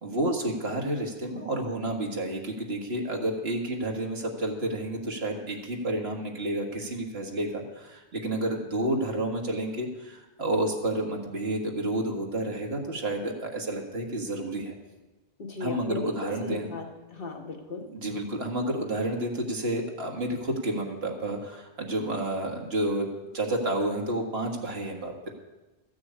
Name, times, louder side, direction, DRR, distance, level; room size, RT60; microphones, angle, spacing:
voice 1, 0.0-14.8 15.6-16.7 17.9-23.1 23.3-25.3, right 1 dB, 65° right, 1 dB, 1.9 m, -30 dB
voice 2, 15.4-17.9, left 3 dB, 55° left, 3 dB, 1.7 m, -36 dB
14.0 x 6.3 x 8.5 m, 1.1 s
omnidirectional pair, 1.1 m